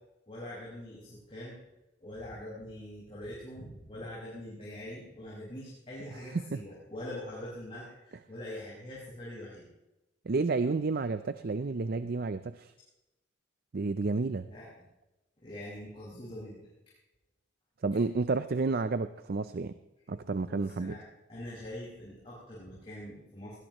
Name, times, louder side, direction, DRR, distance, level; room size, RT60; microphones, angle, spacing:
voice 1, 0.3-1.6 2.0-9.7 14.5-14.7 15.4-16.7 20.5-23.6, left 1 dB, 30° left, -8 dB, 5.3 m, -43 dB
voice 2, 10.3-12.7 13.7-14.5 17.8-19.7 20.1-21.0, right 3 dB, 55° right, 12 dB, 0.5 m, -30 dB
21.0 x 17.5 x 3.1 m, 0.96 s
head